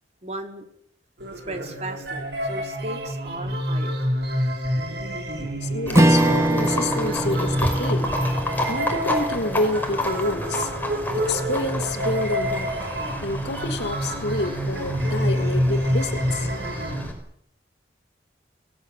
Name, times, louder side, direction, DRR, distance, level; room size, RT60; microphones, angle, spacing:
voice 1, 0.2-0.6 1.5-4.1, right 1 dB, 35° right, 4 dB, 4.1 m, -36 dB
sound 1, 1.2-17.0, equal, 70° right, 7.2 m, -27 dB
voice 2, 5.4-8.1 8.7-10.7 11.3-12.7 13.2-16.5, left 2 dB, 75° left, 8 dB, 2.9 m, -28 dB
Livestock farm animals working animals, 5.9-17.1, left 1 dB, 10° left, 5.1 m, -31 dB
Strum, 5.9-10.6, right 1 dB, 15° right, 2.0 m, -24 dB
28.5 x 18.5 x 7.8 m, 0.70 s
head